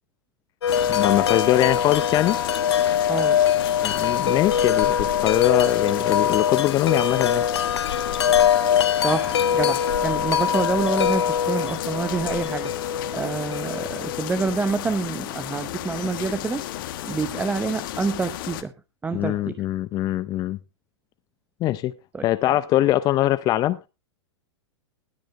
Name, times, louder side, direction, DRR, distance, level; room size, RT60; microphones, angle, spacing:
Wind chime, 0.6-14.6, left 8 dB, 70° left, 0.7 m, -23 dB
sound 1, 0.7-18.6, left 14 dB, 50° left, 1.3 m, -33 dB
voice 1, 0.9-2.4 3.8-7.4 19.1-20.6 21.6-21.9 22.2-23.8, left 14 dB, 25° left, 0.7 m, -22 dB
voice 2, 3.0-3.6 8.7-16.6 17.0-18.7 19.0-19.6 22.1-22.2, right 4 dB, 10° right, 0.8 m, -27 dB
20.5 x 9.1 x 2.2 m
figure-of-eight pair, 105°, 15 cm